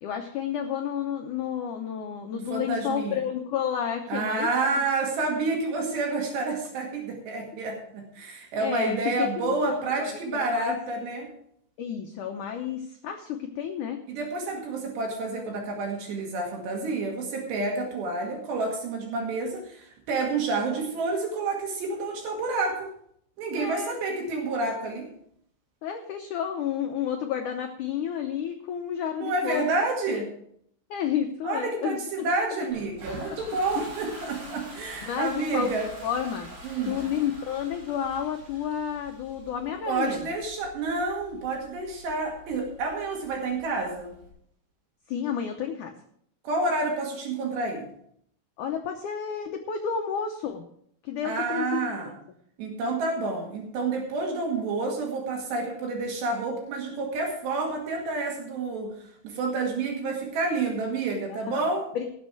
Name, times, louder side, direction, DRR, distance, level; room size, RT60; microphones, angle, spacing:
voice 1, 0.0-4.8 8.6-10.8 11.8-14.0 23.5-23.9 25.8-29.6 30.1-30.2 30.9-32.3 33.8-33.9 35.0-36.5 36.8-40.3 45.1-45.9 48.6-50.6 51.0-52.0 61.3-61.7 61.9-62.1, left 8 dB, 90° left, 4 dB, 1.7 m, -31 dB
voice 2, 2.3-3.2 4.1-11.3 14.1-22.9 23.4-25.1 29.2-30.3 31.4-35.9 36.6-37.0 39.9-44.1 46.4-47.9 51.2-52.1 52.6-58.9 59.2-61.8, right 3 dB, 75° right, 0 dB, 4.2 m, -29 dB
Toilet flush, 32.7-44.3, equal, 55° right, 6.5 m, -46 dB
18.0 x 7.3 x 4.8 m, 0.68 s
omnidirectional pair, 4.9 m